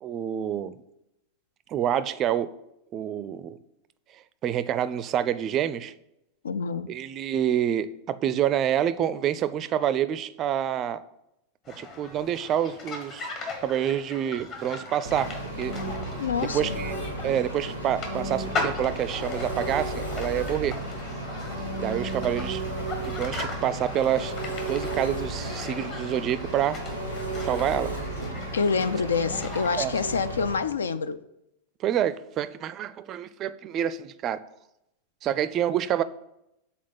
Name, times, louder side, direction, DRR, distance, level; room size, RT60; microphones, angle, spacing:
voice 1, 0.0-0.7 1.7-2.5 2.9-3.6 4.4-5.9 6.9-11.0 11.8-13.3 13.6-15.8 16.5-17.0 17.2-20.7 21.8-22.6 23.0-24.4 24.7-26.8 27.4-27.9 29.8-29.9 31.8-34.4 35.2-36.0, right 10 dB, 30° right, 0.4 m, -27 dB
voice 2, 6.4-6.9 16.2-16.7 28.5-31.2, left 5 dB, 70° left, 0.3 m, -27 dB
sound 1, 11.7-29.9, left 3 dB, 35° left, 1.5 m, -39 dB
Engine, 15.0-30.6, right 1 dB, 85° left, 1.3 m, -33 dB
7.2 x 4.2 x 5.8 m
figure-of-eight pair, 90°, 0 cm